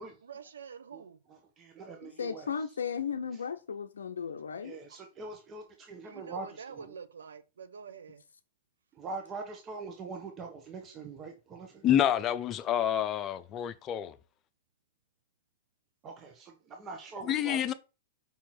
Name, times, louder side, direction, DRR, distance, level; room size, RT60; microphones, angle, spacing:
voice 1, 0.2-1.2 4.9-5.0 6.0-8.2, right 6 dB, 80° right, 0.9 m, -46 dB
voice 2, 1.3-2.5 3.3-3.4 4.6-6.9 8.9-11.8 16.0-17.7, right 3 dB, 30° right, 1.3 m, -43 dB
voice 3, 2.0-4.8, left 6 dB, 80° left, 0.5 m, -35 dB
voice 4, 11.8-14.2 17.3-17.7, left 10 dB, 30° left, 0.7 m, -28 dB
5.6 x 4.5 x 4.3 m
hypercardioid pair, 110°, 0 cm